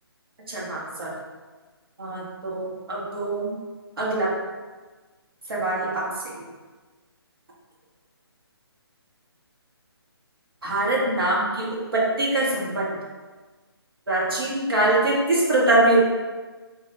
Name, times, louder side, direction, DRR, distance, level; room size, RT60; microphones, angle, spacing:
voice 1, 0.5-1.1 2.0-3.5 4.0-4.3 5.5-6.1 6.4-6.5 10.6-12.9 14.1-16.0, right 2 dB, 60° right, -5 dB, 1.4 m, -23 dB
3.3 x 2.7 x 4.0 m, 1.3 s
figure-of-eight pair, 145°, 14 cm